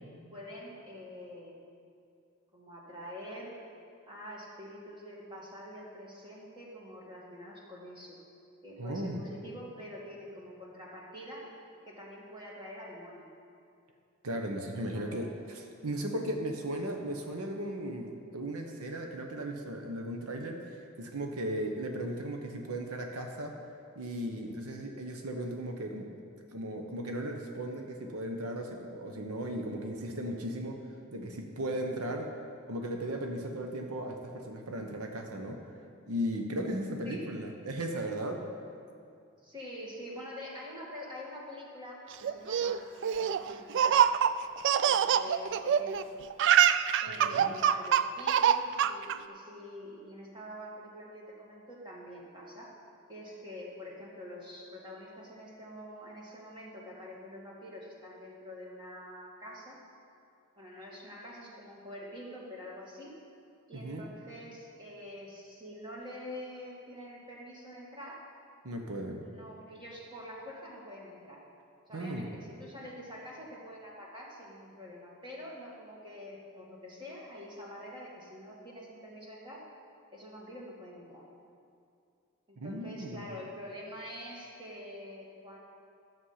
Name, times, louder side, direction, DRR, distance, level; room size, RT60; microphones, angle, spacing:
voice 1, 0.3-1.7 2.5-3.5 4.1-8.2 8.6-11.5 11.8-13.3 14.9-15.3 37.0-37.3 39.4-44.0 44.8-46.1 47.0-52.7 53.1-59.8 60.6-63.2 63.7-68.2 69.2-71.4 71.9-79.7 80.1-81.2 82.5-85.6, left 1 dB, 20° right, -4 dB, 2.0 m, -46 dB
voice 2, 8.8-9.2 14.2-23.5 23.9-26.1 26.5-30.8 31.1-32.3 32.7-35.6 36.1-38.4 47.2-47.6 63.8-64.0 68.6-69.2 71.9-72.3 82.6-83.3, right 1 dB, 80° right, 3 dB, 1.0 m, -36 dB
Laughter, 42.2-46.0 46.3-49.2, right 9 dB, 55° right, 0.3 m, -25 dB
13.0 x 7.3 x 5.7 m, 2.4 s
head